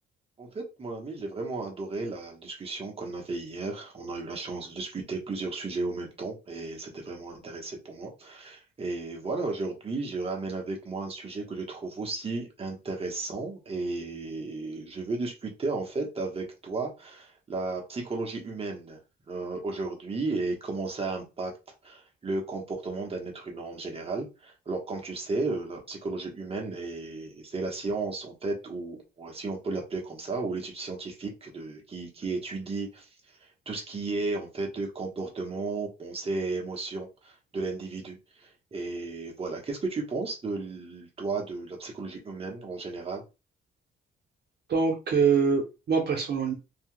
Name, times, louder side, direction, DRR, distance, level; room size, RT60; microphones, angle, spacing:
voice 1, 0.4-19.0 19.3-21.6 21.8-33.1 33.7-43.2, right 3 dB, 30° right, 1.2 m, -34 dB
voice 2, 44.7-46.5, right 5 dB, 55° right, 0.9 m, -24 dB
3.3 x 2.9 x 2.2 m
cardioid pair, 90°, 20 cm